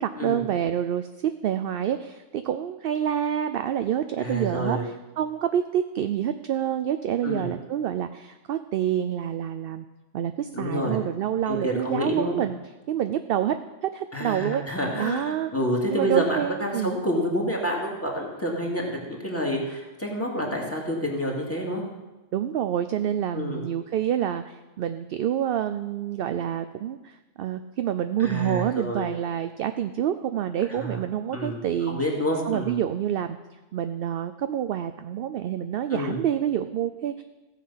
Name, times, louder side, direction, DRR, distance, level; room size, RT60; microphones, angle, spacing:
voice 1, 0.0-9.8 10.1-12.6 12.9-13.5 13.8-14.6 15.0-15.5 15.9-16.9 22.3-32.0 32.5-33.4 33.7-37.2, right 10 dB, 60° right, 10 dB, 0.6 m, -27 dB
voice 2, 4.2-4.8 7.2-7.5 10.5-11.0 11.5-12.3 14.1-21.8 23.3-23.6 28.2-29.1 30.7-31.0 31.3-31.6 31.9-32.8 35.9-36.2, equal, 10° left, -1 dB, 2.3 m, -28 dB
16.0 x 7.6 x 5.7 m, 1.1 s
omnidirectional pair, 1.3 m